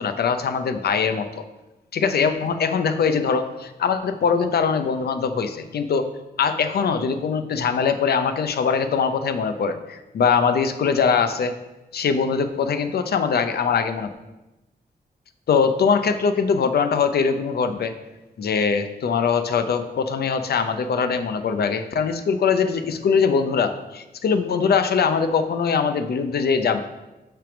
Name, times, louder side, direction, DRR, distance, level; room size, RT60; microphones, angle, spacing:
voice 1, 0.0-1.4 1.9-6.1 6.4-11.5 11.9-14.1 15.5-17.9 18.4-26.8, left 6 dB, 75° left, 9 dB, 0.6 m, -22 dB
9.0 x 3.5 x 5.9 m, 1.0 s
wide cardioid pair, 135°, 17 cm